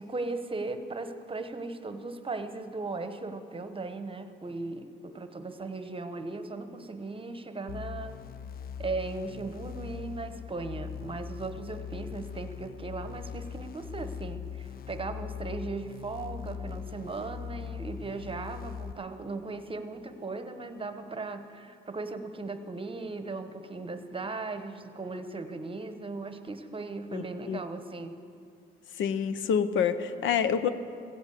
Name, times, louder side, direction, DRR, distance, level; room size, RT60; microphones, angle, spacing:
voice 1, 0.0-8.2 8.8-28.2, right 3 dB, 25° right, 9 dB, 1.0 m, -37 dB
sound 1, 7.7-18.9, left 7 dB, 50° left, 0.5 m, -40 dB
voice 2, 27.1-27.6 29.0-30.7, left 7 dB, 75° left, 12 dB, 0.8 m, -27 dB
15.5 x 8.1 x 8.2 m, 2.4 s
cardioid pair, 90°, 20 cm